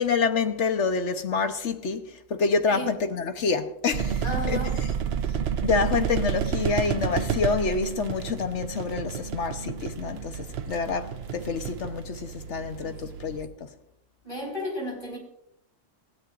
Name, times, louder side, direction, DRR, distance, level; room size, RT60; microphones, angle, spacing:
voice 1, 0.0-4.6 5.6-13.7, left 5 dB, 65° left, 1.3 m, -27 dB
sound 1, 3.9-13.5, right 7 dB, 60° right, 0.9 m, -30 dB
voice 2, 4.2-4.8 5.9-6.0 12.8-12.9 14.2-15.2, left 1 dB, 40° left, 5.6 m, -34 dB
19.5 x 15.5 x 2.6 m
omnidirectional pair, 1.3 m